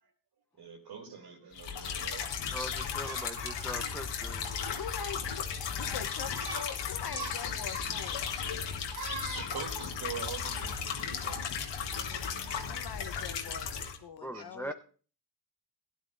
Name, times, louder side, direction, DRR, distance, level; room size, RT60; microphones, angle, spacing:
voice 1, 0.6-2.3 2.7-3.9 6.4-6.6 7.0-7.3 7.7-8.6 8.9-11.4 11.8-12.7 14.3-14.7, right 4 dB, 65° right, 3.3 m, -43 dB
sound 1, 1.6-14.0, left 7 dB, 85° left, 1.4 m, -35 dB
voice 2, 2.5-4.7 14.2-14.7, equal, 5° left, 0.9 m, -41 dB
voice 3, 4.7-5.5 5.8-8.2 12.7-14.7, left 7 dB, 60° left, 1.1 m, -43 dB
16.0 x 10.5 x 2.6 m
cardioid pair, 60°, 42 cm